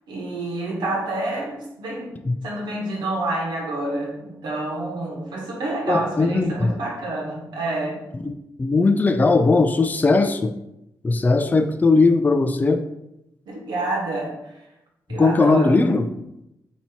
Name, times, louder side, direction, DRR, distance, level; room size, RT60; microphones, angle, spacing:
voice 1, 0.1-2.2 2.4-8.0 13.5-14.4 15.1-15.8, right 2 dB, 80° right, -1 dB, 1.2 m, -28 dB
voice 2, 5.9-6.8 8.2-8.3 8.6-10.5 11.0-12.8 15.1-16.1, left 3 dB, 25° left, 8 dB, 0.4 m, -18 dB
4.1 x 2.9 x 4.3 m, 0.86 s
cardioid pair, 70°, 7 cm